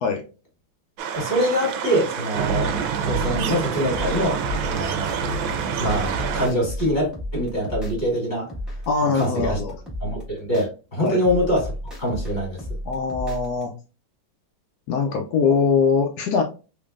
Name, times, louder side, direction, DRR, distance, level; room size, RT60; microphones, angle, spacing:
sound 1, 1.0-6.5, right 6 dB, 75° right, 1.4 m, -26 dB
voice 1, 1.2-2.7 3.0-5.1 5.8-8.5 9.1-9.6 10.0-12.6, equal, 25° left, -2 dB, 1.8 m, -24 dB
sound 2, 3.0-5.2 5.6-8.2 8.5-10.6 11.0-13.6, left 1 dB, ahead, 0.9 m, -33 dB
voice 2, 8.9-9.8 11.0-11.2 12.9-13.7 14.9-16.4, left 5 dB, 85° left, 2 dB, 0.8 m, -22 dB
3.7 x 3.3 x 2.4 m, 0.34 s
omnidirectional pair, 2.2 m